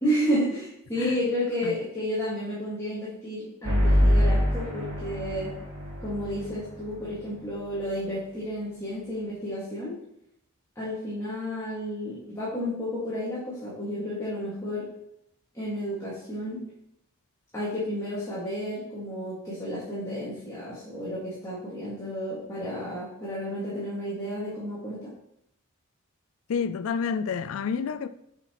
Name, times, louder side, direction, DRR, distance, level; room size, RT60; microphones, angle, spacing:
voice 1, 0.0-5.5 6.0-9.9 10.8-14.8 15.5-16.6 17.5-25.1, equal, 15° left, 1.9 m, -31 dB
sound 1, 3.6-7.2, equal, 70° right, 1.6 m, -25 dB
voice 2, 26.5-28.1, left 6 dB, 75° left, 0.4 m, -29 dB
7.7 x 5.8 x 3.0 m
head